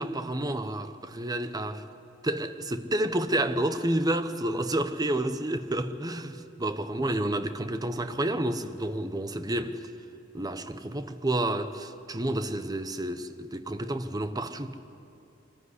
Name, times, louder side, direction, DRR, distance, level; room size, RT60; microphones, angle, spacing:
voice 1, 0.0-1.9 2.2-9.8 10.3-14.7, right 1 dB, 20° right, 0.8 m, -30 dB
23.5 x 15.0 x 9.7 m
head